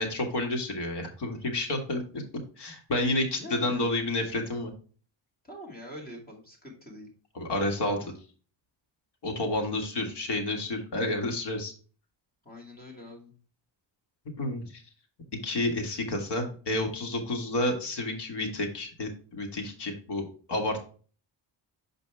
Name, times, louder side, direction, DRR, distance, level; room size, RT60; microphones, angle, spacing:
voice 1, 0.0-2.2 2.6-4.7 7.4-8.0 9.2-11.7 14.4-14.8 15.4-20.8, left 1 dB, 60° left, 2 dB, 1.9 m, -30 dB
voice 2, 3.4-3.9 5.4-7.1 7.5-8.0 12.4-13.4, left 1 dB, 20° left, -1 dB, 2.3 m, -44 dB
6.6 x 5.2 x 3.5 m, 0.39 s
cardioid pair, 135°, 46 cm